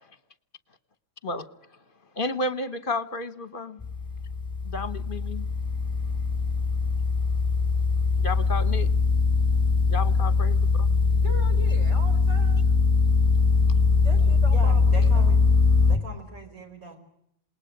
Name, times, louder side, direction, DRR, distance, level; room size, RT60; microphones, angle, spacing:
voice 1, 2.2-3.8 4.7-5.5 8.2-8.9 9.9-10.9, left 2 dB, 40° left, 13 dB, 1.2 m, -32 dB
sound 1, 3.8-16.0, left 4 dB, 5° left, 1.1 m, -22 dB
voice 2, 11.1-12.6 13.9-15.4, right 1 dB, 50° right, 3 dB, 4.7 m, -41 dB
voice 3, 14.4-15.4 15.9-17.0, right 2 dB, 80° right, 4 dB, 5.5 m, -40 dB
28.0 x 20.0 x 8.0 m, 0.77 s
omnidirectional pair, 1.5 m